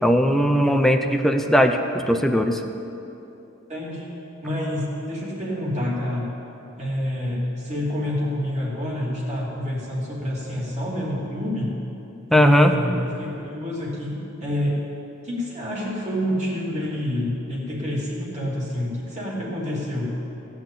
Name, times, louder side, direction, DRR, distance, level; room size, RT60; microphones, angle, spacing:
voice 1, 0.0-2.6 12.3-12.8, equal, ahead, 4 dB, 0.6 m, -19 dB
voice 2, 3.7-4.1 4.4-6.3 6.8-11.8 12.3-14.8 15.2-20.2, left 1 dB, 35° right, -5 dB, 3.0 m, -27 dB
16.5 x 6.1 x 8.7 m, 2.9 s
head